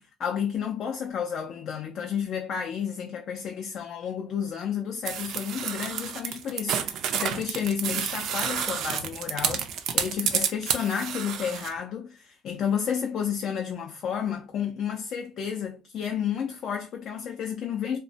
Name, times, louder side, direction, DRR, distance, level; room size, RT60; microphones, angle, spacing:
voice 1, 0.0-18.0, left 8 dB, 45° left, 0.3 m, -31 dB
sound 1, 5.1-11.7, right 8 dB, 55° right, 0.4 m, -29 dB
2.9 x 2.1 x 2.6 m
cardioid pair, 160°, 0 cm